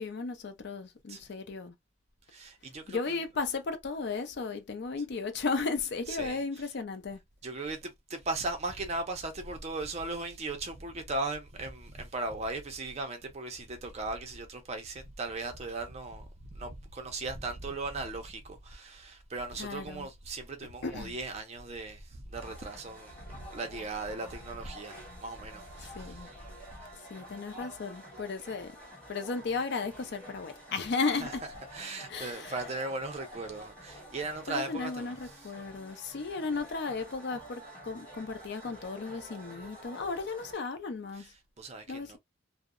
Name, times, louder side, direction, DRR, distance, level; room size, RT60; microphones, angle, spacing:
voice 1, 0.0-1.7 2.9-7.2 19.6-20.1 20.8-21.1 25.8-26.3 27.1-28.8 29.1-31.4 32.1-32.5 34.5-41.3 41.9-42.2, left 4 dB, 55° left, 0.5 m, -35 dB
voice 2, 2.3-3.2 6.1-6.7 7.4-26.5 31.2-31.4 31.7-35.5 41.1-41.3 41.6-42.2, right 2 dB, 30° right, 0.5 m, -38 dB
sound 1, 22.3-40.5, equal, 5° left, 1.3 m, -49 dB
2.7 x 2.0 x 2.4 m
head